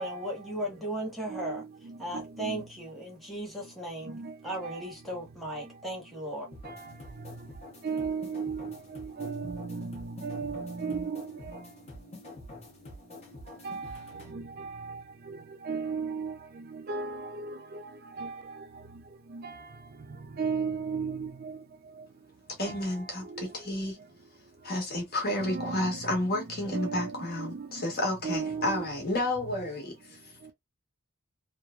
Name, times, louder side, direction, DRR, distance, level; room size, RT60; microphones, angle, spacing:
voice 1, 0.0-1.6 2.0-4.2 4.4-6.5, right 1 dB, ahead, 1.1 m, -36 dB
voice 2, 1.3-2.6 4.1-4.8 6.6-7.3 7.8-11.7 13.6-17.8 18.2-18.7 19.3-19.8 20.1-21.6 22.6-23.5 25.4-27.9 28.2-28.9, right 5 dB, 45° right, 0.4 m, -36 dB
sound 1, 6.5-14.3, left 1 dB, 30° left, 0.9 m, -47 dB
voice 3, 22.6-24.0 24.6-30.5, left 1 dB, 45° left, 1.2 m, -31 dB
3.0 x 2.1 x 2.4 m
head